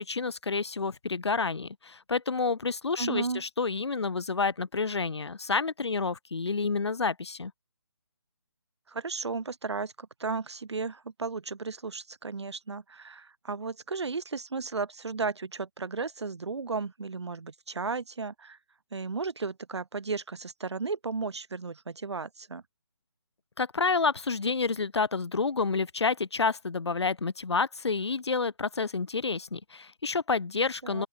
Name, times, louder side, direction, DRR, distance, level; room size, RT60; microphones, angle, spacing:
voice 1, 0.0-7.5 23.6-31.1, left 4 dB, 75° left, 1.6 m, -29 dB
voice 2, 3.0-3.4 8.9-18.6 18.9-22.6 30.8-31.1, right 4 dB, 80° right, 1.4 m, -34 dB
open air
hypercardioid pair, 175°, 14 cm